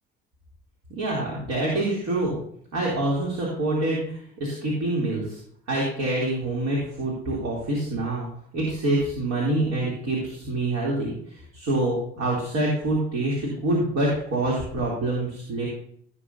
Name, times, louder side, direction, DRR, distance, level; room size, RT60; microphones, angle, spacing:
voice 1, 1.0-2.4 2.7-5.4 5.7-8.3 8.5-11.1 11.5-15.7, right 2 dB, 55° right, -5 dB, 3.3 m, -26 dB
16.5 x 7.5 x 2.8 m, 0.66 s
figure-of-eight pair, 55°, 32 cm